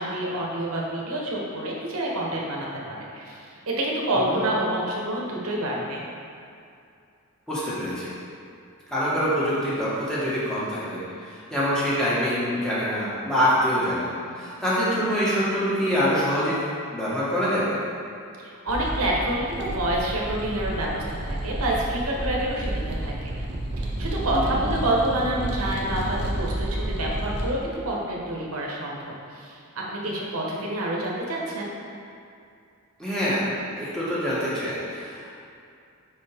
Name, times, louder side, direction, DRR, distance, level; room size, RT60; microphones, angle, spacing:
voice 1, 0.0-6.0 18.4-23.3 23.8-31.7, right 1 dB, 75° right, -3 dB, 1.1 m, -28 dB
voice 2, 7.5-8.1 8.9-16.6 16.9-17.8 24.3-24.6 33.0-35.3, equal, 5° left, -11 dB, 1.5 m, -25 dB
sound 1, 18.7-27.5, right 1 dB, 50° right, 0.9 m, -30 dB
5.4 x 5.1 x 3.5 m, 2.5 s
head